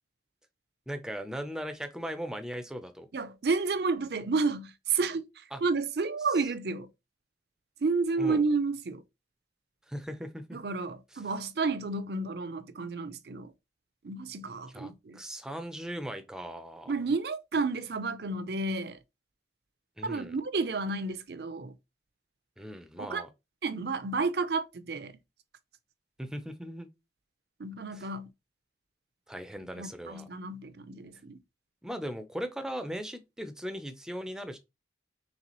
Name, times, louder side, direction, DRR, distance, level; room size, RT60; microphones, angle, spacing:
voice 1, 0.9-3.1 5.5-5.6 6.2-6.5 8.2-8.5 9.9-10.6 11.1-11.3 14.7-16.9 20.0-20.4 22.6-23.3 26.2-26.9 27.9-28.1 29.3-30.3 31.8-34.6, equal, 5° right, 0.5 m, -39 dB
voice 2, 3.1-5.2 5.6-6.9 7.8-9.0 10.5-13.5 14.0-15.2 16.9-19.0 20.0-21.7 23.0-23.2 23.6-25.1 27.6-28.3 29.8-31.4, right 4 dB, 60° right, 0.5 m, -31 dB
4.1 x 3.3 x 3.0 m
head